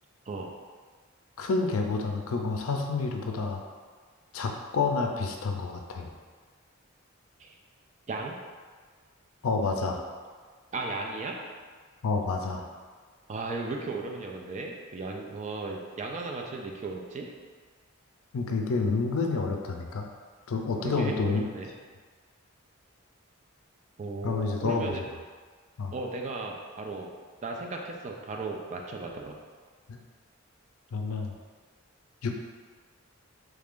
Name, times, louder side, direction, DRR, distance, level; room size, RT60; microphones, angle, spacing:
voice 1, 1.4-3.6 4.3-6.1 9.4-10.1 12.0-12.7 18.3-20.0 20.5-21.4 24.2-24.9 25.8-25.9 29.9-30.0 30.9-31.3 32.2-32.3, left 4 dB, 75° left, 3 dB, 0.4 m, -29 dB
voice 2, 10.7-11.4 13.3-17.3 20.8-21.7 24.0-25.0 25.9-27.1 27.4-29.4, right 3 dB, 35° right, 1 dB, 0.3 m, -35 dB
3.2 x 2.4 x 3.5 m, 1.5 s
head